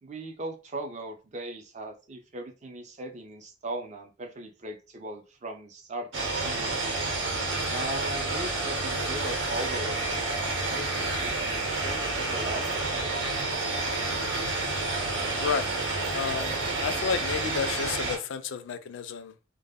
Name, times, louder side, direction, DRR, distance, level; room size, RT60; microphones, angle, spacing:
voice 1, 0.0-6.1 6.4-6.8 7.7-13.1, right 1 dB, 40° right, 0.5 m, -39 dB
sound 1, 6.1-18.2, right 2 dB, 75° right, 0.7 m, -29 dB
voice 2, 15.4-15.7 16.1-19.3, left 6 dB, 75° left, 0.3 m, -31 dB
2.1 x 2.0 x 3.4 m
head